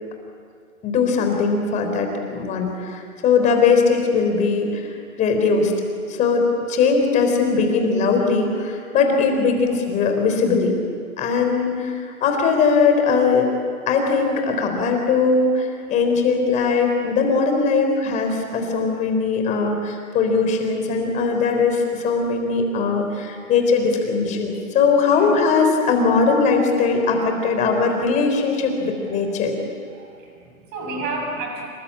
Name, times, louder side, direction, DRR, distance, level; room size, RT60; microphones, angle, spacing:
voice 1, 0.8-4.9 5.2-5.7 6.1-10.7 11.2-13.5 13.9-29.5, left 4 dB, 15° left, 4 dB, 3.7 m, -20 dB
voice 2, 9.0-9.4 25.1-25.4 27.3-27.5 28.4-28.7 29.1-29.5 29.9-31.6, right 2 dB, 20° right, 0 dB, 7.0 m, -33 dB
27.0 x 24.0 x 8.6 m, 2.2 s
hypercardioid pair, 155°, 43 cm